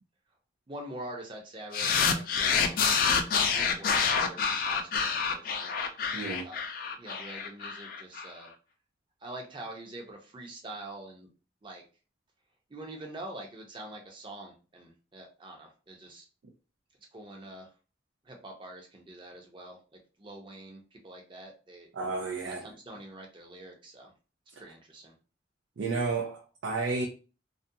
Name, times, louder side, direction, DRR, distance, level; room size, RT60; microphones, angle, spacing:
voice 1, 0.7-2.9 3.5-5.7 6.3-6.6 7.0-8.5 9.2-11.3 11.6-11.8 12.7-16.3 17.1-17.7 18.2-21.9 22.5-24.1 24.6-25.1, right 1 dB, 25° right, 0.6 m, -45 dB
sound 1, 1.7-8.3, left 6 dB, 50° left, 0.3 m, -27 dB
voice 2, 6.1-6.5 21.9-22.6 25.8-27.1, right 3 dB, 90° right, 0.4 m, -32 dB
2.4 x 2.2 x 2.6 m
head